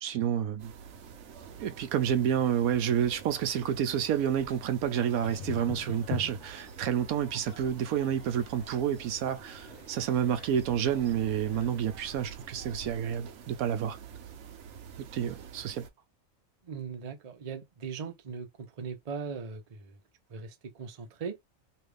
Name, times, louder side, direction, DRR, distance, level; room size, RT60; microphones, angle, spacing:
voice 1, 0.0-0.7 1.6-14.0 15.1-15.9, right 9 dB, 85° right, 1.1 m, -29 dB
sound 1, 0.6-15.9, right 6 dB, 60° right, 0.9 m, -47 dB
sound 2, 5.2-11.8, left 8 dB, 65° left, 1.1 m, -44 dB
voice 2, 16.6-20.0 20.3-21.4, right 6 dB, 40° right, 0.6 m, -39 dB
3.2 x 2.5 x 3.3 m
omnidirectional pair, 1.5 m